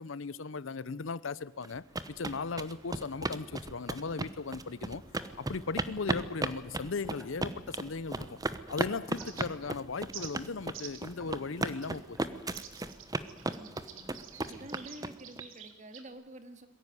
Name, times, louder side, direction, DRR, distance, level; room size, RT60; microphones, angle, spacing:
voice 1, 0.0-5.0 5.4-8.4 8.7-12.4, left 4 dB, 75° left, 0.7 m, -37 dB
sound 1, 1.6-15.4, right 2 dB, 20° right, 0.9 m, -35 dB
sound 2, 4.9-13.0, equal, ahead, 3.6 m, -57 dB
sound 3, 9.2-9.7 10.1-10.3 10.7-11.1 11.8-12.0 12.5-16.1, right 9 dB, 80° right, 2.5 m, -47 dB
voice 2, 13.3-14.2 14.4-16.7, right 1 dB, 35° right, 1.9 m, -49 dB
22.5 x 15.5 x 9.6 m
head